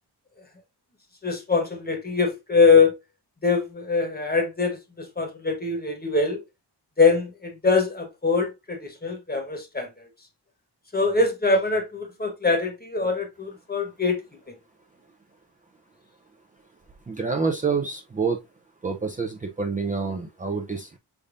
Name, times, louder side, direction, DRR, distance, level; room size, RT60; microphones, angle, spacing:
voice 1, 1.2-2.9 3.4-6.4 7.0-9.9 10.9-14.2, left 4 dB, 20° left, 1.1 m, -23 dB
voice 2, 17.1-18.4 18.8-21.0, right 4 dB, 20° right, 0.4 m, -27 dB
5.3 x 3.5 x 2.5 m
wide cardioid pair, 145°, 42 cm